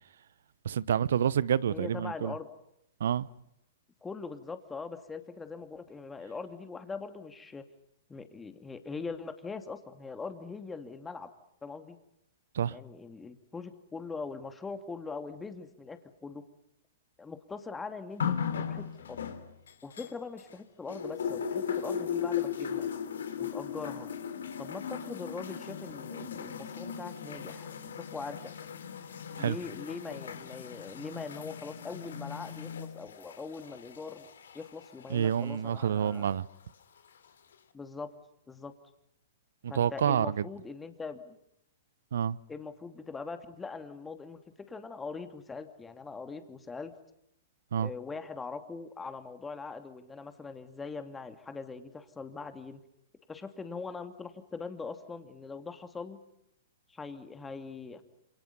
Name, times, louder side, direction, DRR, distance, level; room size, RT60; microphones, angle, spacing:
voice 1, 0.6-2.3 3.0-3.3 12.5-12.8 29.4-29.6 35.1-36.5 39.6-40.4 42.1-42.4 47.7-47.9, right 9 dB, 70° right, 0.9 m, -28 dB
voice 2, 1.7-2.5 4.0-7.6 8.1-11.3 11.6-12.0 12.7-16.4 17.2-19.2 19.8-22.9 23.4-24.1 24.6-28.5 29.4-34.3 34.5-36.3 37.7-38.1 38.5-38.7 39.7-41.4 42.5-46.9 47.8-52.8 53.3-56.2 56.9-58.0, left 4 dB, 10° left, 2.8 m, -42 dB
sound 1, 18.2-20.6 20.9-35.6 36.5-36.6, left 7 dB, 75° left, 2.9 m, -37 dB
28.5 x 28.0 x 5.5 m
hypercardioid pair, 115°, 0 cm